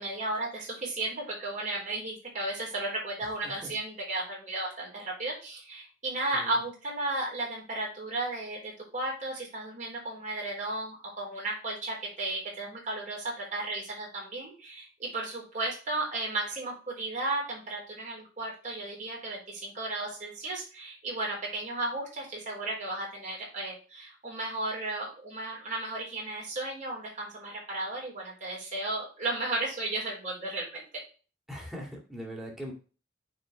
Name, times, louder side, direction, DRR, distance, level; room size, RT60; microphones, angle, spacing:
voice 1, 0.0-30.8, right 2 dB, 40° right, -3 dB, 3.9 m, -34 dB
voice 2, 31.5-32.7, equal, ahead, -2 dB, 2.3 m, -41 dB
9.2 x 4.3 x 3.3 m, 0.35 s
head